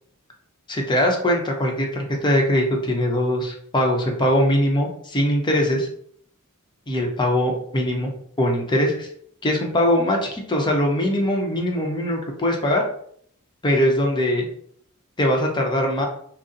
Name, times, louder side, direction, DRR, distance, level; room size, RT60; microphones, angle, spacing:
voice 1, 0.7-5.9 6.9-8.1 8.4-9.1 9.4-12.9 13.6-14.5 15.2-16.0, equal, 20° left, 0 dB, 0.7 m, -21 dB
4.0 x 2.0 x 3.7 m, 0.63 s
head